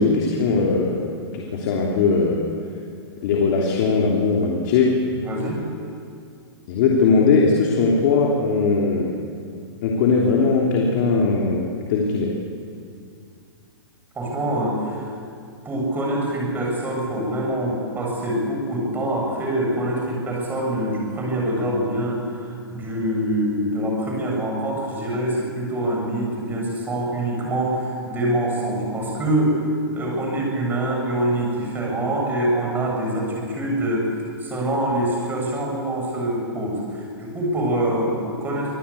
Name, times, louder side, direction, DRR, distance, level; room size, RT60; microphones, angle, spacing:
voice 1, 0.0-2.5 3.2-5.1 6.7-9.2 9.8-12.4, left 4 dB, 45° left, -1 dB, 3.1 m, -20 dB
voice 2, 5.2-5.6 14.2-15.1 15.6-29.6 29.9-34.1 34.4-38.7, right 1 dB, 15° right, -1 dB, 7.0 m, -25 dB
25.5 x 18.0 x 8.5 m, 2.3 s
hypercardioid pair, 145°, 14 cm